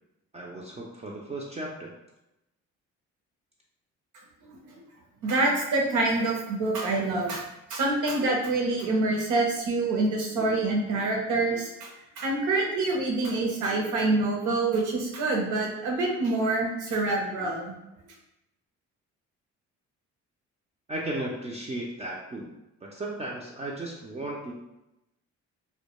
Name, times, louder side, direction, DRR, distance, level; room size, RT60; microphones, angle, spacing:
voice 1, 0.3-1.9 20.9-22.5 22.8-24.5, right 1 dB, 20° right, -3 dB, 0.4 m, -35 dB
voice 2, 5.2-7.4 7.7-11.9 12.2-17.7, right 2 dB, 80° right, -1 dB, 0.7 m, -26 dB
2.2 x 2.1 x 2.9 m, 0.91 s
cardioid pair, 90°, 30 cm